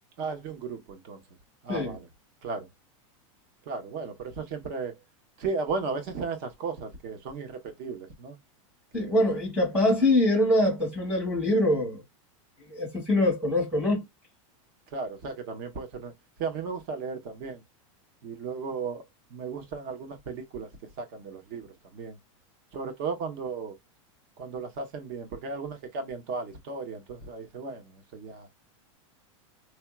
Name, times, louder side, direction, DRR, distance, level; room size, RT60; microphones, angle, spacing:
voice 1, 0.2-1.2 1.6-2.1 2.4-2.7 3.7-5.0 5.4-8.4 8.9-9.3 14.9-16.1 16.4-17.6 18.2-20.7 21.0-22.2 22.7-23.8 24.4-28.5, right 4 dB, 35° right, 1.1 m, -35 dB
voice 2, 8.9-12.0 12.7-14.0, left 1 dB, 5° right, 1.3 m, -24 dB
4.4 x 2.7 x 2.4 m
supercardioid pair, 175°, 17 cm